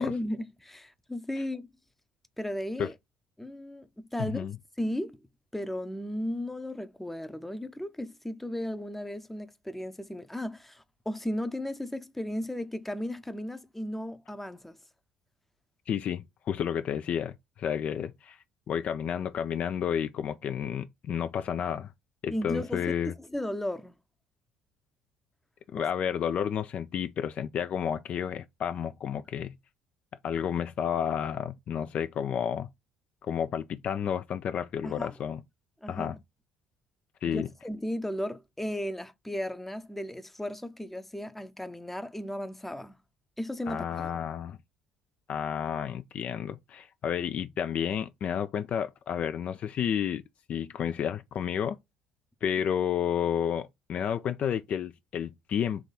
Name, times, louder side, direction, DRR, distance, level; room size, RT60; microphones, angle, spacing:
voice 1, 0.0-1.7 2.4-2.9 3.4-4.5 4.8-5.2 5.5-14.8 22.3-24.0 34.8-35.1 35.8-36.2 37.2-43.0 43.4-44.1, left 1 dB, 5° left, 0.6 m, -35 dB
voice 2, 4.2-4.6 15.9-18.4 18.7-21.9 22.2-23.1 25.7-29.5 30.2-32.7 33.2-35.4 35.9-36.2 37.2-37.5 43.7-44.6 45.3-50.2 50.5-51.8 52.4-55.8, left 8 dB, 45° left, 0.3 m, -31 dB
3.5 x 3.1 x 4.0 m
figure-of-eight pair, 55°, 3 cm